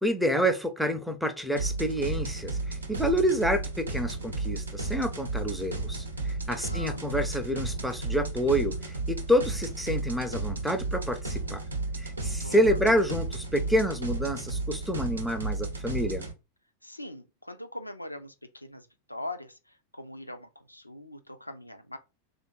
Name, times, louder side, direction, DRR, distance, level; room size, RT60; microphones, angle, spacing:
voice 1, 0.0-11.6 12.0-16.3, equal, ahead, 0.6 m, -28 dB
sound 1, 1.6-16.3, right 3 dB, 75° right, 0.6 m, -33 dB
voice 2, 6.5-7.0 12.2-12.8 16.8-19.6 19.9-22.0, left 1 dB, 85° left, 0.4 m, -42 dB
3.2 x 2.5 x 4.4 m
figure-of-eight pair, 90°, 0 cm